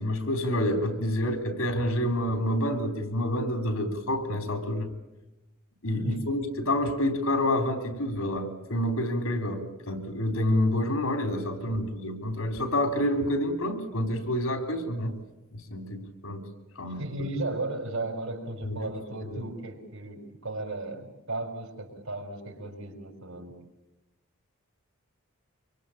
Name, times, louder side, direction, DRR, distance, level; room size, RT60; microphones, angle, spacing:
voice 1, 0.0-4.9 5.8-15.2 15.5-16.5 16.8-17.1 18.6-18.9 19.2-19.4, left 1 dB, 90° left, 7 dB, 3.8 m, -28 dB
voice 2, 17.0-23.5, right 2 dB, 85° right, 6 dB, 4.8 m, -35 dB
25.0 x 24.0 x 8.7 m, 0.99 s
head